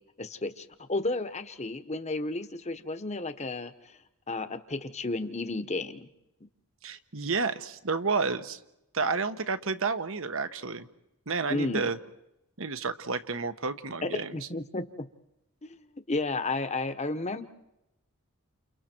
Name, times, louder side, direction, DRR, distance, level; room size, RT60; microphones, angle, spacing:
voice 1, 0.2-3.7 4.3-6.1 11.5-11.9 14.3-15.1 15.6-15.8 16.1-17.4, left 2 dB, 30° left, 9 dB, 1.2 m, -32 dB
voice 2, 6.8-8.6 8.9-10.9 11.3-12.0 12.6-14.4, right 4 dB, 60° right, 10 dB, 1.2 m, -30 dB
30.0 x 29.5 x 4.6 m, 0.88 s
head